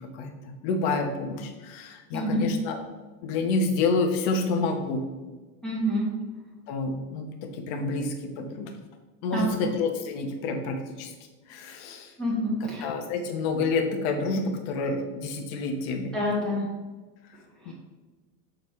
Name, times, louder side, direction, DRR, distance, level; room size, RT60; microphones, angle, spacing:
voice 1, 0.1-2.8 3.2-5.0 6.7-8.7 9.2-11.1 11.5-12.1 12.6-16.1 17.6-17.7, left 3 dB, 35° left, 5 dB, 1.1 m, -28 dB
voice 2, 2.1-2.5 5.6-6.1 9.3-9.5 12.2-12.8 16.1-16.6, equal, ahead, -7 dB, 1.3 m, -27 dB
7.1 x 6.3 x 3.2 m, 1.3 s
supercardioid pair, 155°, 50 cm